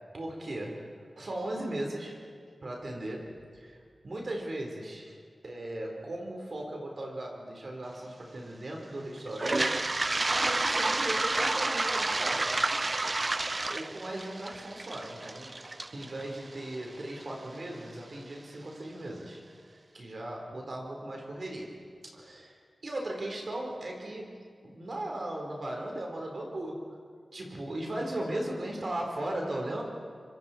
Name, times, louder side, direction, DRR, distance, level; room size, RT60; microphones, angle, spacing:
voice 1, 0.1-2.2 2.6-3.8 4.0-5.1 5.4-12.5 13.7-15.6 15.9-19.4 19.9-21.8 22.1-22.6 22.8-26.9 27.3-29.8, right 1 dB, 65° right, 0 dB, 4.4 m, -37 dB
Toilet flush, 9.3-17.2, right 2 dB, 45° right, 0.5 m, -30 dB
25.0 x 24.5 x 4.6 m, 2.1 s
cardioid pair, 40°, 0 cm